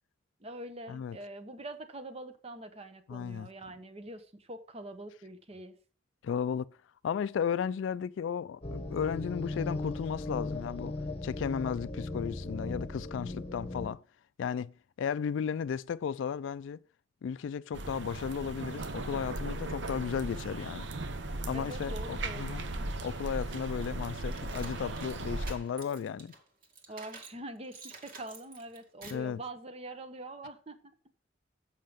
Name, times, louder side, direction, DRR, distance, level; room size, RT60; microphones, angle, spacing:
voice 1, 0.4-5.7 21.5-22.9 26.9-30.8, right 1 dB, 30° right, 1.0 m, -44 dB
voice 2, 3.1-3.5 6.2-6.7 7.0-10.9 11.2-14.0 14.4-16.8 17.2-20.9 21.5-22.6 23.0-26.3 29.1-29.4, left 7 dB, 80° left, 0.3 m, -34 dB
sound 1, 8.6-13.9, left 2 dB, 30° left, 1.1 m, -37 dB
sound 2, 17.7-25.5, right 2 dB, 65° right, 0.9 m, -37 dB
sound 3, 23.8-27.4 27.7-29.3, right 4 dB, 50° right, 2.1 m, -50 dB
7.6 x 6.6 x 5.1 m
head